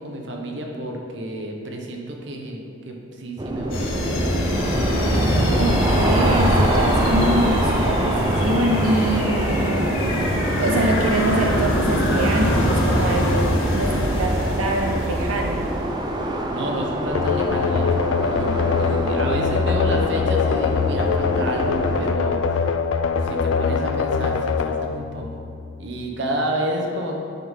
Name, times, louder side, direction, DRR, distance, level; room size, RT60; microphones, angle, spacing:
voice 1, 0.0-3.9 16.5-22.6 23.2-25.4 25.8-27.2, right 1 dB, 55° right, 1 dB, 0.9 m, -30 dB
sound 1, 3.4-22.1, right 1 dB, 20° right, 0.4 m, -26 dB
sound 2, 3.7-16.0, equal, 90° left, 1.8 m, -23 dB
voice 2, 5.1-10.3 10.6-15.7, right 1 dB, 90° right, 2 dB, 0.5 m, -25 dB
sound 3, 17.1-25.8, left 5 dB, 70° left, 0.4 m, -23 dB
9.1 x 5.6 x 3.7 m, 2.5 s
head